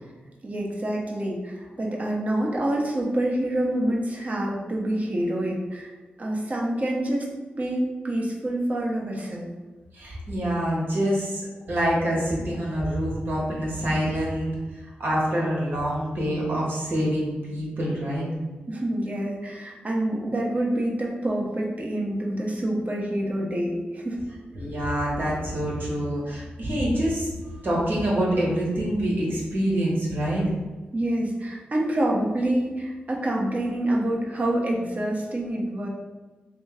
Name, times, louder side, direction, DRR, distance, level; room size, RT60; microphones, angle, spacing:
voice 1, 0.4-5.9 6.2-7.2 7.5-9.5 18.7-24.2 30.9-35.9, right 1 dB, 40° right, -2 dB, 1.0 m, -27 dB
voice 2, 9.9-14.5 14.8-18.3 24.5-27.3 27.6-30.4, equal, 65° right, -4 dB, 1.5 m, -26 dB
3.3 x 3.0 x 3.5 m, 1.2 s
cardioid pair, 60°, 4 cm